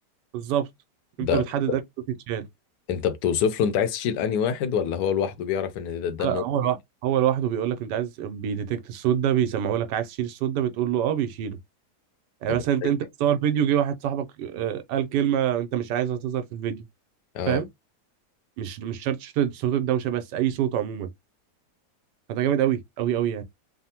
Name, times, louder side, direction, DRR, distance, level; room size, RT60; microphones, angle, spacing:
voice 1, 0.3-0.7 1.2-1.8 2.3-2.5 6.2-6.8 7.0-11.6 12.4-16.8 17.5-17.7 18.6-21.1 22.3-23.4, right 10 dB, 85° right, 1.2 m, -25 dB
voice 2, 1.2-1.8 2.9-6.4 12.8-12.9 17.3-17.6, left 8 dB, 80° left, 1.2 m, -26 dB
3.3 x 2.0 x 2.7 m
omnidirectional pair, 1.8 m